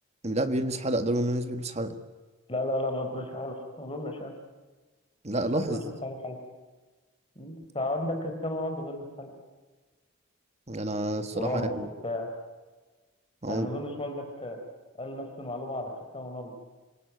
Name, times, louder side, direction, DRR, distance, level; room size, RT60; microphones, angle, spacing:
voice 1, 0.2-2.0 5.2-5.8 10.7-11.9 13.4-13.7, right 1 dB, 30° right, 9 dB, 1.7 m, -29 dB
voice 2, 2.5-4.3 5.7-6.4 7.4-9.3 11.3-12.3 13.5-14.6 15.0-16.5, left 1 dB, 25° left, 4 dB, 4.3 m, -34 dB
27.0 x 21.0 x 9.4 m, 1.3 s
head